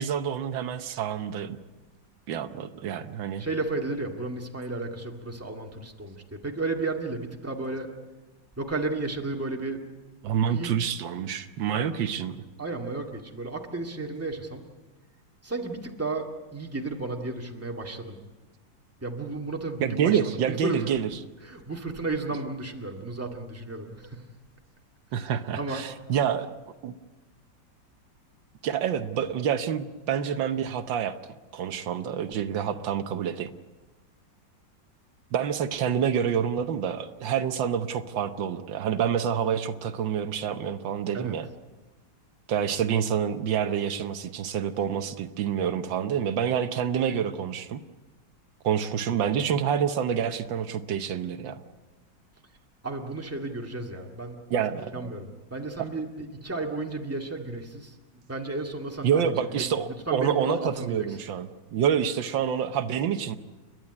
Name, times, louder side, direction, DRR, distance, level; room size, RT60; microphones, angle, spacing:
voice 1, 0.0-1.6 2.3-3.5 10.2-12.4 19.8-21.1 25.1-26.5 26.8-26.9 28.6-31.2 31.5-33.5 35.3-41.5 42.5-47.8 48.6-51.6 54.5-55.1 59.0-63.4, right 8 dB, 80° right, 10 dB, 1.6 m, -27 dB
voice 2, 3.4-7.9 8.6-9.8 10.5-10.7 12.6-14.6 15.4-16.3 16.5-18.2 19.0-20.8 21.4-24.2 25.1-25.3 25.6-25.8 41.1-41.3 52.8-54.6 54.9-58.0 58.3-59.2 59.5-61.1, right 2 dB, 10° right, 2 dB, 1.9 m, -33 dB
30.0 x 11.0 x 9.7 m, 1.2 s
omnidirectional pair, 2.0 m